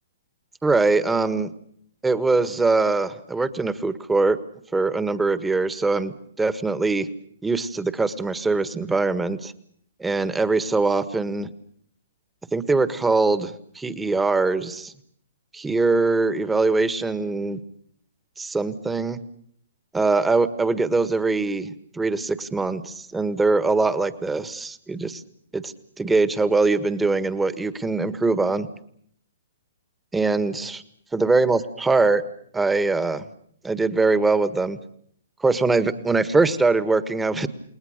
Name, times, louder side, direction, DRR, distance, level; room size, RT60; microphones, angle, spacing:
voice 1, 0.6-1.5 2.0-4.4 4.7-7.1 7.4-9.5 10.0-11.5 12.5-14.9 15.5-17.6 18.4-19.2 19.9-25.2 25.5-28.7 30.1-30.8 31.1-32.2 32.5-33.2 33.6-34.8 35.4-37.5, right 3 dB, 10° right, 14 dB, 1.5 m, -22 dB
29.0 x 20.5 x 6.6 m, 0.64 s
figure-of-eight pair, 125°, 0 cm